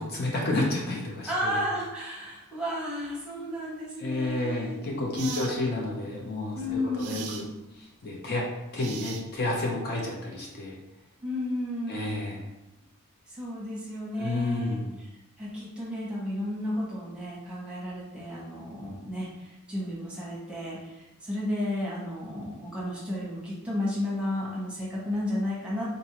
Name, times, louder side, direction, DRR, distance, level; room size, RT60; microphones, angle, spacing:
voice 1, 0.0-1.6 4.0-6.6 7.0-7.4 8.0-8.5 8.7-10.8 11.9-12.5 14.2-14.9, left 2 dB, 45° left, -1 dB, 0.6 m, -30 dB
voice 2, 1.3-5.7 6.5-7.5 11.2-12.1 13.3-15.1 15.4-25.8, left 1 dB, 5° right, -6 dB, 0.9 m, -33 dB
sound 1, 4.3-4.4 5.1-5.5 7.0-7.5 8.8-9.5, right 7 dB, 75° right, 0.4 m, -39 dB
3.9 x 2.6 x 2.9 m, 0.99 s
head